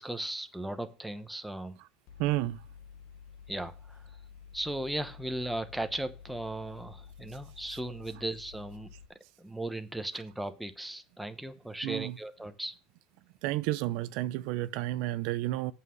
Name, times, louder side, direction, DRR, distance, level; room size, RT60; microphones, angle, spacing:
voice 1, 0.0-1.8 3.5-4.1 4.5-8.9 9.4-12.7, right 1 dB, ahead, 0.9 m, -37 dB
Mechanical fan, 2.1-9.0, left 7 dB, 55° left, 1.2 m, -51 dB
voice 2, 2.2-2.6 11.8-12.2 13.4-15.7, right 16 dB, 60° right, 0.5 m, -31 dB
8.2 x 5.6 x 6.3 m
supercardioid pair, 150°, 0 cm